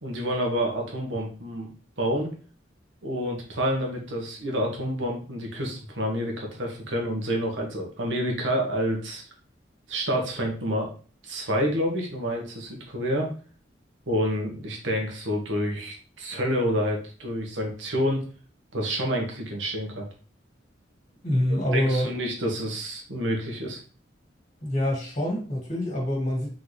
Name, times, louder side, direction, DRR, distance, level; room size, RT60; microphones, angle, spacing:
voice 1, 0.0-1.7 2.0-2.3 3.0-9.2 9.9-10.9 11.2-13.3 14.1-18.2 18.7-20.1 21.7-23.8, equal, 85° right, 0 dB, 1.4 m, -28 dB
voice 2, 21.2-22.1 24.6-26.5, left 1 dB, 35° left, -2 dB, 1.9 m, -26 dB
4.0 x 3.9 x 3.2 m, 0.40 s
head